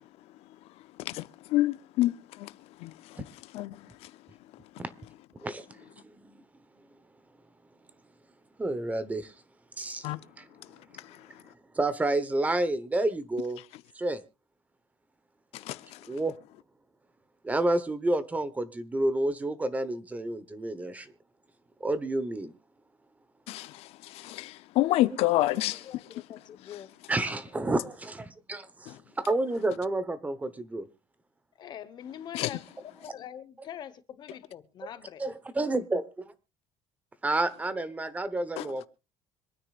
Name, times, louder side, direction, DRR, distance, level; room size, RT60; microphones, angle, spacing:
voice 1, 1.0-2.5 2.8-3.2 3.5-3.8 4.0-4.1 10.0-10.2 15.5-16.0 23.5-25.9 28.9-29.0 32.3-32.5 38.6-38.7, left 16 dB, 75° left, 0.6 m, -29 dB
voice 2, 5.4-6.4 8.6-9.3 9.8-10.1 10.4-10.5 11.7-13.6 13.9-14.2 16.1-16.4 17.4-21.1 21.8-22.5 27.1-30.9 35.2-36.3 37.2-38.8, right 2 dB, 15° right, 1.0 m, -30 dB
voice 3, 25.8-26.9 31.6-32.6 33.1-35.2, left 9 dB, 45° left, 1.1 m, -44 dB
26.0 x 9.8 x 2.4 m
cardioid pair, 150°, 10 cm